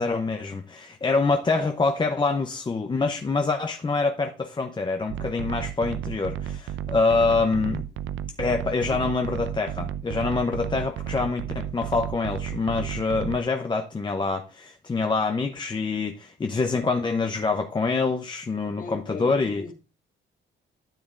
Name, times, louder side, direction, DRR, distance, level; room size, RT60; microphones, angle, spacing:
voice 1, 0.0-7.8 8.4-19.6, left 4 dB, 25° left, 0.7 m, -25 dB
sound 1, 5.1-13.4, right 10 dB, 80° right, 0.5 m, -33 dB
voice 2, 16.7-17.1 18.7-19.7, left 4 dB, 45° left, 1.8 m, -39 dB
12.0 x 7.0 x 2.5 m
cardioid pair, 90°, 20 cm